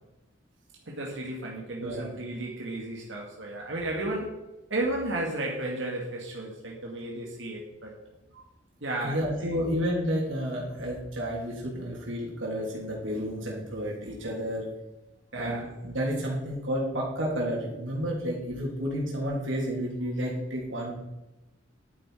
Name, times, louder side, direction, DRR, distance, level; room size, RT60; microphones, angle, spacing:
voice 1, 0.9-4.3 4.7-7.9 8.8-9.5 15.3-15.7, right 1 dB, 70° right, -2 dB, 2.1 m, -33 dB
voice 2, 1.8-2.1 8.3-8.4 9.0-14.6 15.3-20.9, equal, 85° right, -3 dB, 3.2 m, -31 dB
11.0 x 9.9 x 5.0 m, 0.99 s
head